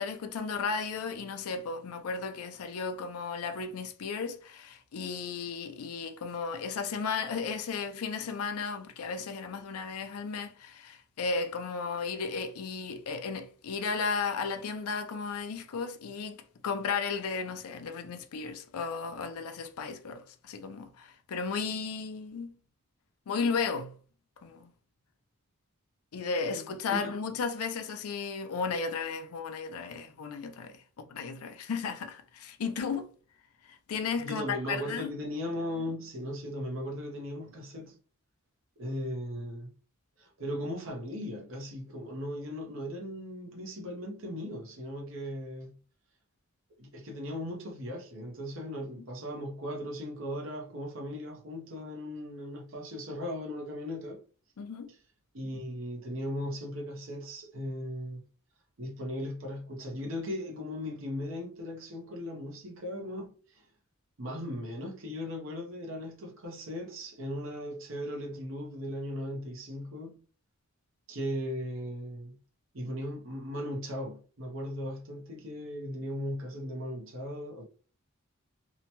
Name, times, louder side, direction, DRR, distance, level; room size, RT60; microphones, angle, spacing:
voice 1, 0.0-22.5 23.3-23.9 24.4-24.7 26.1-33.1 33.7-35.1 54.6-54.9, left 5 dB, 85° left, 0.4 m, -34 dB
voice 2, 26.5-27.1 34.2-38.0 38.8-39.7 40.2-45.8 46.8-54.2 55.3-58.2 58.8-63.6 64.2-70.2 71.1-72.4 72.7-77.6, equal, 60° right, 0.7 m, -37 dB
2.8 x 2.1 x 2.8 m
head